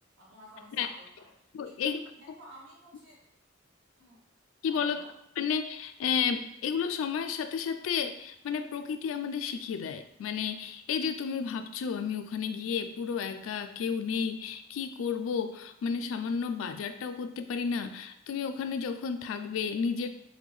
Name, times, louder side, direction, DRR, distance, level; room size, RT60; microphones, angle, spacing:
voice 1, 0.2-1.3 1.6-3.2 4.0-4.2 4.7-5.1, equal, 70° right, -5 dB, 1.3 m, -53 dB
voice 2, 1.5-2.0 4.6-5.0 5.4-20.1, left 6 dB, 90° left, 9 dB, 0.3 m, -32 dB
3.5 x 2.2 x 3.1 m, 0.77 s
head